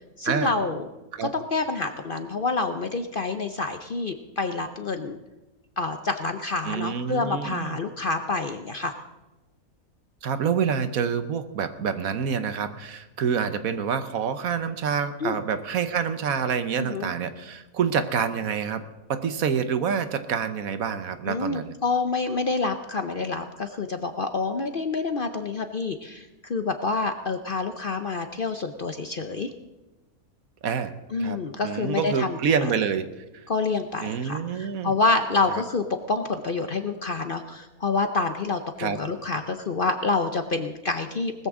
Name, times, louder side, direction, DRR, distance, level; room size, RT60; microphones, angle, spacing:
voice 1, 0.2-0.9 1.2-5.2 5.8-8.9 15.2-15.4 16.8-17.1 21.3-29.5 31.1-32.7 33.5-41.3, left 3 dB, 50° left, 7 dB, 0.7 m, -27 dB
voice 2, 6.7-7.8 10.2-18.8 19.1-21.7 30.6-30.9 31.2-31.4 31.6-33.1 33.3-33.4 34.0-34.9 35.5-35.6 38.8-39.0, right 7 dB, 70° right, 11 dB, 1.3 m, -27 dB
19.0 x 14.0 x 3.7 m, 1.1 s
omnidirectional pair, 1.6 m